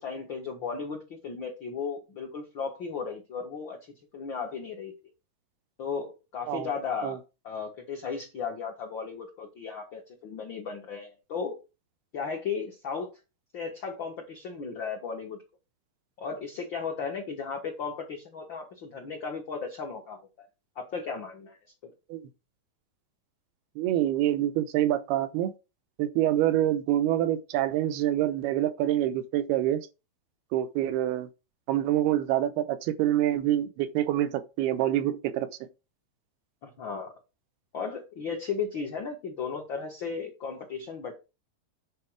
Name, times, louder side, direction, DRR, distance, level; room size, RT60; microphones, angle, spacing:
voice 1, 0.0-3.8 4.1-4.9 5.8-7.2 7.4-11.6 12.1-13.1 13.5-15.4 16.2-20.5 20.7-21.9 36.6-37.1 37.7-41.1, left 5 dB, 55° left, 1.4 m, -35 dB
voice 2, 23.8-25.5 26.0-29.9 30.5-31.3 31.7-35.7, right 12 dB, 85° right, 2.8 m, -26 dB
9.7 x 4.6 x 4.7 m
omnidirectional pair, 4.4 m